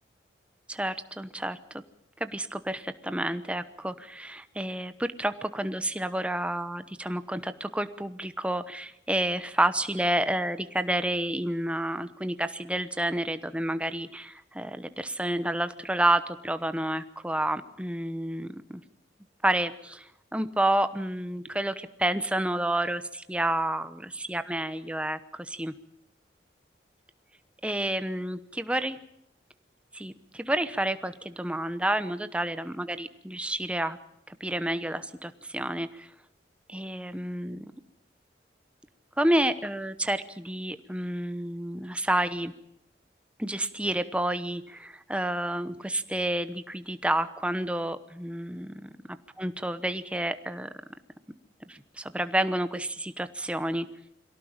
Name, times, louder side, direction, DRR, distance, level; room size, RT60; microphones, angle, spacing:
voice 1, 0.7-1.6 2.2-18.8 19.4-24.0 24.3-25.7 27.6-29.0 29.9-34.0 34.3-36.1 36.7-37.7 39.2-42.5 43.4-48.9 49.4-50.7 51.7-53.9, right 1 dB, 5° right, 11 dB, 0.9 m, -30 dB
23.0 x 17.5 x 8.9 m, 0.80 s
head